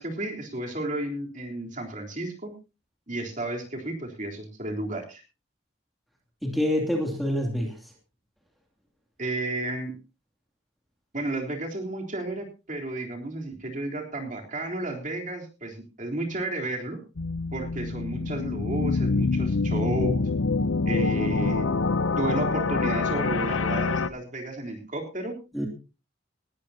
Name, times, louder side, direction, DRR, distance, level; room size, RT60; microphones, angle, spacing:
voice 1, 0.0-2.5 3.1-5.2 9.2-9.9 11.1-17.0 17.5-20.3 20.9-21.7 22.2-25.4, right 2 dB, 40° right, 1 dB, 3.6 m, -32 dB
voice 2, 6.4-7.9 25.5-25.7, left 1 dB, ahead, 0 dB, 2.7 m, -27 dB
sound 1, 17.2-24.1, left 3 dB, 90° left, 0.8 m, -26 dB
19.5 x 13.5 x 2.8 m, 0.30 s
head